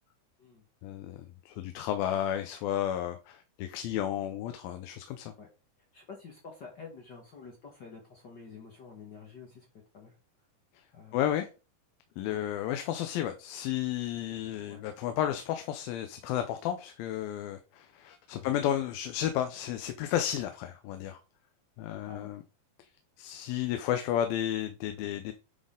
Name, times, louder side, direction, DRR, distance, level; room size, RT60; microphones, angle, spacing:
voice 1, 0.8-5.3 11.1-11.5 12.2-21.2 21.8-22.4 23.2-25.3, left 11 dB, 90° left, 2.5 m, -32 dB
voice 2, 5.9-9.6 9.9-10.2 10.9-11.2 12.3-12.4 14.7-14.9 18.3-18.5 22.1-22.3, left 5 dB, 65° left, 1.0 m, -48 dB
9.5 x 4.2 x 3.7 m
omnidirectional pair, 4.1 m